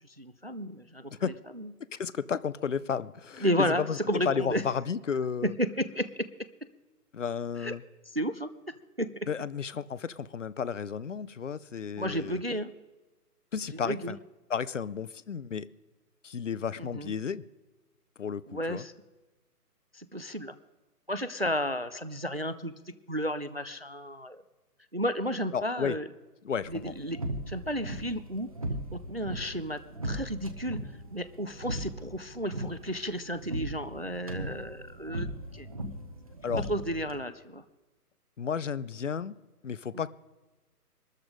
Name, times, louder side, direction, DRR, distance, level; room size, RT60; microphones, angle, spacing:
voice 1, 0.2-1.1 1.5-1.7 3.4-4.6 5.4-6.3 7.6-7.7 8.1-9.3 12.0-12.7 13.8-14.2 16.8-17.1 18.5-18.9 19.9-20.6 21.1-22.7 23.1-24.4 24.9-26.1 26.7-27.2 27.5-28.5 28.9-30.8 31.1-35.7 36.6-37.6 39.9-40.1, equal, 40° right, 14 dB, 0.4 m, -32 dB
voice 2, 1.9-4.0 4.2-5.5 7.1-7.8 9.3-12.4 13.5-14.2 14.5-15.7 16.2-17.4 18.2-18.9 25.5-26.0 26.4-26.9 36.4-36.6 38.4-39.3 39.6-40.1, left 6 dB, 50° left, 19 dB, 0.6 m, -33 dB
sound 1, 26.6-37.2, right 1 dB, 20° right, 0.8 m, -38 dB
21.5 x 13.0 x 5.0 m, 1.1 s
hypercardioid pair, 170°, 48 cm